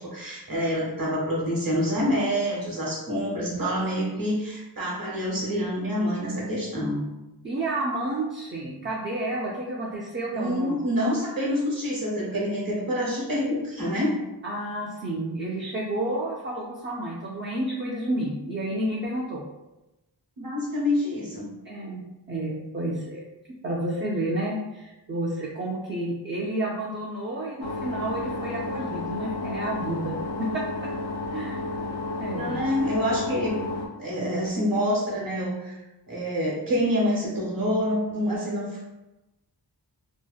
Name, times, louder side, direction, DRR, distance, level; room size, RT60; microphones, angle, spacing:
voice 1, 0.0-7.0 10.3-14.1 20.4-21.5 32.3-33.7 34.0-35.8 36.1-38.8, equal, 55° right, -4 dB, 0.9 m, -27 dB
voice 2, 7.4-10.8 14.4-19.4 21.6-22.0 22.3-23.2 23.6-30.9 31.3-31.6 32.2-32.6, right 1 dB, 30° right, -4 dB, 0.4 m, -30 dB
sound 1, 27.6-33.9, left 2 dB, 70° left, 0.5 m, -32 dB
2.7 x 2.1 x 2.3 m, 0.98 s
wide cardioid pair, 60°, 42 cm